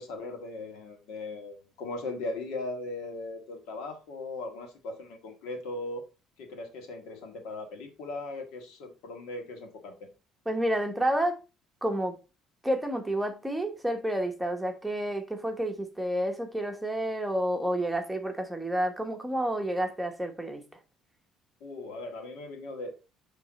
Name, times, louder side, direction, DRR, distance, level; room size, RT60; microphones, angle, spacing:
voice 1, 0.0-6.0 6.4-10.1 21.6-22.9, left 2 dB, 85° left, 1.6 m, -38 dB
voice 2, 10.5-11.4 11.8-12.2 12.6-20.6, right 1 dB, 5° right, 1.0 m, -30 dB
8.8 x 3.2 x 4.1 m
cardioid pair, 115°, 0 cm